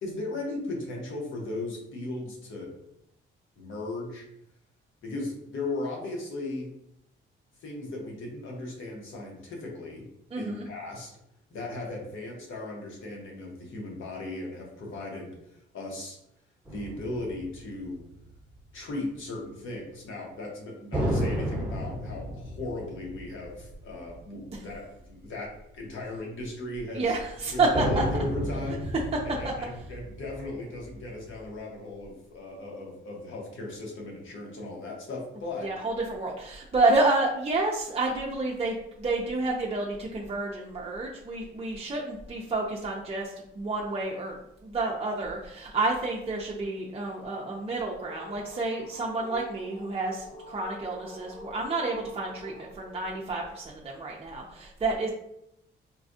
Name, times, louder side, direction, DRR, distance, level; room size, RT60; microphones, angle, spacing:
voice 1, 0.0-2.7 3.6-4.3 5.0-6.7 7.6-10.0 10.4-11.1 11.5-15.4 15.7-16.2 16.7-18.0 18.7-27.1 27.5-28.9 29.2-35.7, left 2 dB, 70° left, -1 dB, 1.1 m, -37 dB
voice 2, 10.3-10.6 24.5-24.6 26.9-28.0 35.6-44.4 44.6-55.1, right 3 dB, 30° right, -3 dB, 0.5 m, -29 dB
sound 1, 16.6-18.6 20.9-24.6 25.0-25.1 27.7-31.4, equal, 5° right, 0.9 m, -33 dB
sound 2, 47.7-53.7, left 2 dB, 40° left, 1.4 m, -46 dB
4.2 x 2.3 x 2.6 m, 0.78 s
cardioid pair, 85°, 21 cm